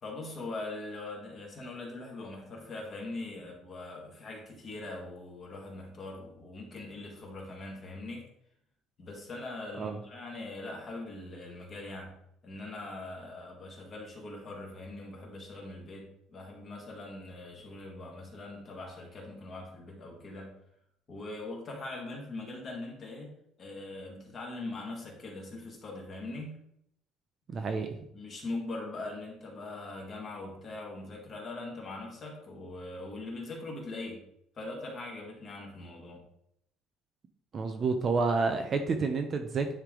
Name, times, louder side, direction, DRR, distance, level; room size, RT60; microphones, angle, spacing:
voice 1, 0.0-8.3 9.0-12.1 12.4-20.5 21.1-26.6 28.1-34.2 34.6-36.2, left 2 dB, 30° left, -1 dB, 1.7 m, -41 dB
voice 2, 27.5-28.0 37.5-39.7, right 4 dB, 30° right, 6 dB, 0.5 m, -29 dB
9.8 x 3.3 x 3.7 m, 0.74 s
cardioid pair, 170°, 0 cm